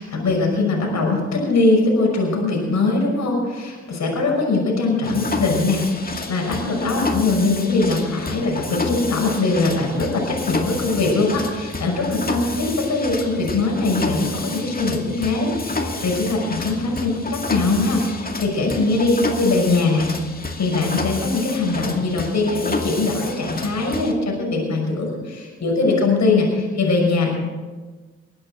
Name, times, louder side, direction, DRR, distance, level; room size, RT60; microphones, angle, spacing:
voice 1, 0.0-20.1 20.6-27.3, left 3 dB, 55° left, 0 dB, 6.0 m, -21 dB
Mechanisms, 5.0-24.1, left 3 dB, 25° left, 2.2 m, -30 dB
21.5 x 8.7 x 6.7 m, 1.3 s
hypercardioid pair, 45°, 34 cm